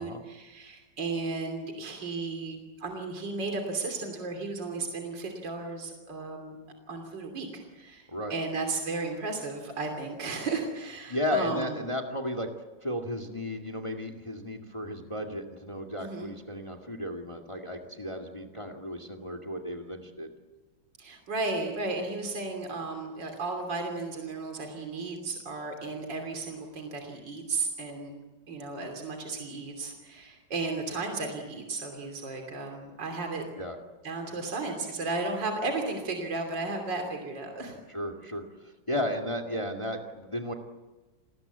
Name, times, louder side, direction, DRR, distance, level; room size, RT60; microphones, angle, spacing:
voice 1, 0.0-6.6 6.9-11.7 16.0-16.3 21.0-28.2 28.5-33.4 34.0-37.8, right 3 dB, 65° right, 3 dB, 3.7 m, -34 dB
voice 2, 11.1-12.5 12.8-20.3 33.6-33.8 37.9-40.5, left 1 dB, 15° left, 3 dB, 2.1 m, -34 dB
29.5 x 20.0 x 8.2 m, 1.2 s
omnidirectional pair, 2.1 m